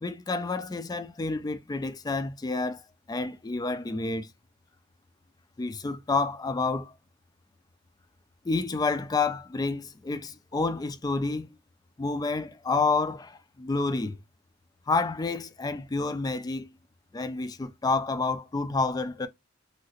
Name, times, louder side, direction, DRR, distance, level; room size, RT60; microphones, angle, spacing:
voice 1, 0.0-2.8 3.1-4.3 5.6-7.0 8.4-11.5 12.0-14.2 14.9-16.7 17.1-19.3, left 3 dB, 20° left, 0.3 m, -29 dB
2.8 x 2.8 x 2.8 m
head